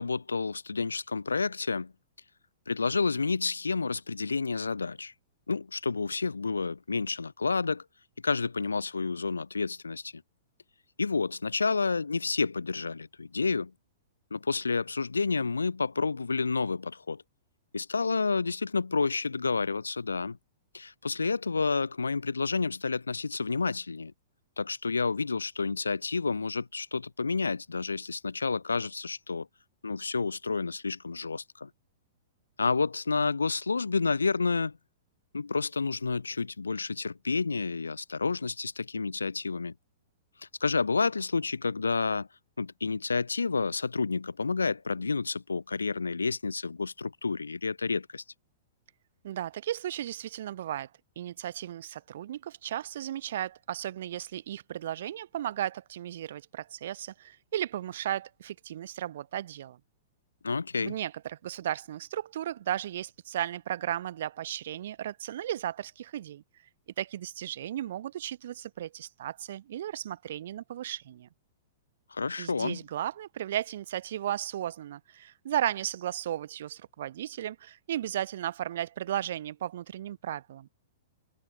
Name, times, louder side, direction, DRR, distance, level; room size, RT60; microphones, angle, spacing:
voice 1, 0.0-1.9 2.7-5.1 5.5-7.8 8.2-10.2 11.0-13.7 14.3-17.2 17.7-20.4 20.7-24.1 24.6-29.5 29.8-31.7 32.6-34.8 35.3-39.7 40.6-42.3 42.6-48.2 60.4-61.0 72.1-72.8, left 4 dB, 85° left, 0.5 m, -30 dB
voice 2, 49.2-50.9 51.1-59.8 60.8-66.4 67.0-71.3 72.4-80.7, right 11 dB, 60° right, 1.5 m, -35 dB
figure-of-eight pair, 110°, 0 cm